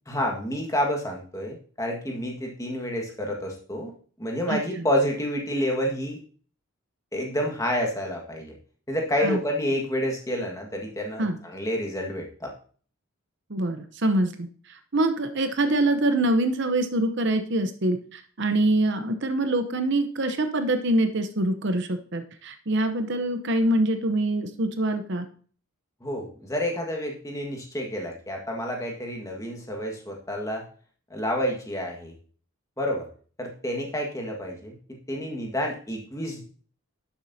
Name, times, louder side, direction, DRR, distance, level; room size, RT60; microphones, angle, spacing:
voice 1, 0.1-3.9 4.2-6.2 7.1-8.5 8.9-12.5 26.0-30.6 31.1-32.1 32.8-33.1 33.4-34.8 35.1-36.4, equal, 15° left, 0 dB, 1.6 m, -29 dB
voice 2, 4.5-4.9 9.2-9.4 11.2-11.4 13.5-25.3, right 1 dB, 55° right, 8 dB, 0.8 m, -25 dB
11.5 x 7.3 x 2.8 m, 0.43 s
head